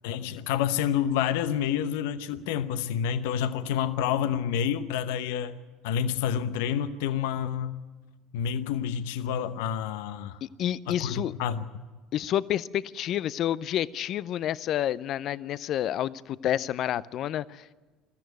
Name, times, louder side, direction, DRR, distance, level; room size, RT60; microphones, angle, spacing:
voice 1, 0.0-5.6 5.8-7.8 8.3-10.4 10.9-11.8, left 9 dB, 75° left, 0.8 m, -28 dB
voice 2, 10.4-11.3 12.1-17.7, left 11 dB, 55° left, 0.6 m, -29 dB
22.0 x 14.0 x 9.3 m
hypercardioid pair, 70°, 0 cm